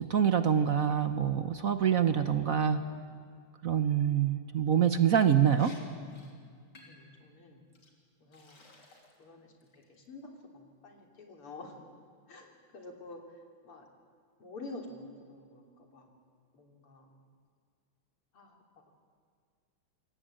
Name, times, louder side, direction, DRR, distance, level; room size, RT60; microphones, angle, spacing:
voice 1, 0.0-2.8 3.6-5.8, right 8 dB, 55° right, 10 dB, 1.1 m, -26 dB
Liquid, 5.2-5.3 5.6-5.8 6.1-6.3 6.8-7.1 7.7-7.9 8.3-9.2 9.6-10.0, left 2 dB, 50° left, 3.7 m, -56 dB
voice 2, 6.8-7.6 8.2-8.7 9.2-11.8 12.3-13.9 14.4-16.1 16.5-17.2 18.3-18.6, left 2 dB, 85° left, 2 dB, 4.2 m, -48 dB
27.5 x 23.0 x 8.9 m, 2.1 s
omnidirectional pair, 2.4 m